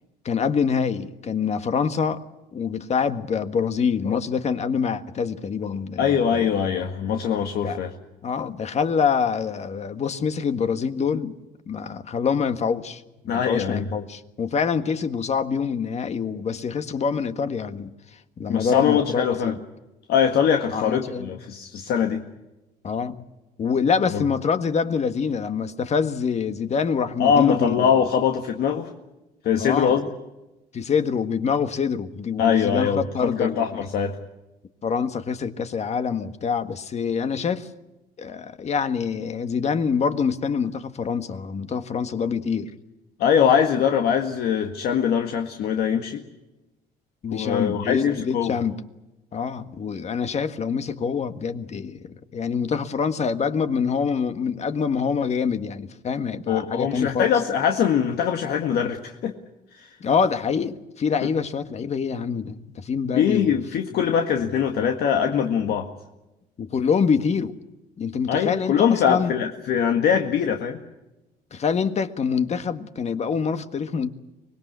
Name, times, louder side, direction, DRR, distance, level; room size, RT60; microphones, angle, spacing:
voice 1, 0.3-2.2 2.5-6.5 7.6-7.8 8.2-11.3 11.7-19.6 20.7-21.3 22.8-23.2 23.6-28.0 29.6-30.0 30.7-33.9 34.8-37.7 38.2-42.7 47.2-48.8 49.3-52.0 52.3-57.3 60.0-63.6 66.6-67.6 68.0-69.3 71.5-74.1, left 6 dB, 40° left, 9 dB, 1.7 m, -25 dB
voice 2, 6.0-7.9 13.3-13.9 18.5-19.5 20.1-22.2 24.1-24.2 27.2-28.9 29.4-30.1 32.4-34.2 43.2-46.2 47.3-48.6 56.5-59.3 59.7-59.9 63.1-65.9 68.3-70.8, left 8 dB, 70° left, 3 dB, 1.9 m, -22 dB
25.0 x 20.5 x 8.2 m, 1.0 s
cardioid pair, 110°, 17 cm